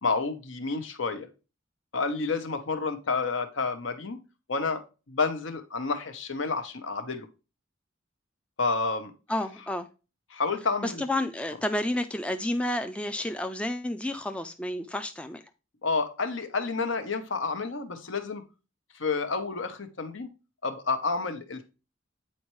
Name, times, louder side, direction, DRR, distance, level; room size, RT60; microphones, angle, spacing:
voice 1, 0.0-1.3 1.9-4.2 4.5-4.8 5.1-7.3 8.6-9.1 10.3-11.0 15.8-18.4 18.9-20.3 20.6-21.6, left 4 dB, 75° left, 0.9 m, -29 dB
voice 2, 9.3-9.9 10.8-15.4, left 1 dB, 5° left, 0.3 m, -30 dB
8.6 x 4.3 x 3.1 m
head